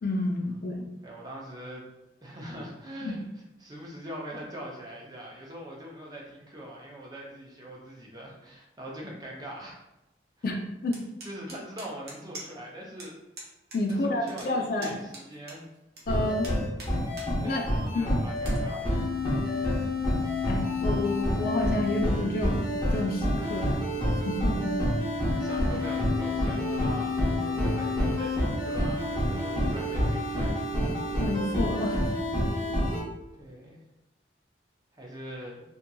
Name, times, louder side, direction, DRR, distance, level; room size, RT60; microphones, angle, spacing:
voice 1, 0.0-0.9 3.0-3.1 10.4-10.6 10.8-11.0 13.7-15.0 16.1-16.5 17.4-17.7 17.9-18.2 20.5-23.9 24.2-24.8 31.2-32.0, left 2 dB, 55° left, 1 dB, 0.4 m, -29 dB
voice 2, 1.0-1.8 2.2-3.3 3.6-9.8 11.2-13.2 13.9-15.7 17.4-19.0 25.3-30.6 33.4-33.8 34.9-35.6, equal, 25° right, -3 dB, 0.5 m, -42 dB
sound 1, 10.9-12.7 13.0-13.1 13.4-13.8 14.1-16.0 16.4-17.3 17.7-17.8 18.4-18.6, right 2 dB, 60° right, 0.7 m, -44 dB
sound 2, 16.1-33.0, left 1 dB, 30° left, 0.8 m, -28 dB
2.7 x 2.5 x 2.2 m, 0.94 s
head